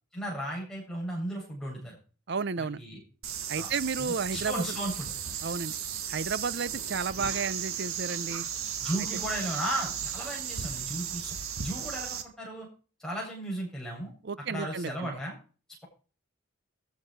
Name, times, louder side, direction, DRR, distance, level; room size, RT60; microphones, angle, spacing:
voice 1, 0.1-2.0 2.6-3.0 3.5-3.7 4.0-5.1 8.8-11.3 11.6-12.7 13.0-14.1 14.5-15.4, right 1 dB, ahead, 7.9 m, -35 dB
voice 2, 2.3-2.8 3.5-4.7 5.4-5.8 6.1-8.4 14.2-15.1, right 5 dB, 50° right, 0.6 m, -32 dB
sound 1, 3.2-12.2, right 8 dB, 85° right, 1.8 m, -35 dB
14.5 x 9.4 x 4.7 m
head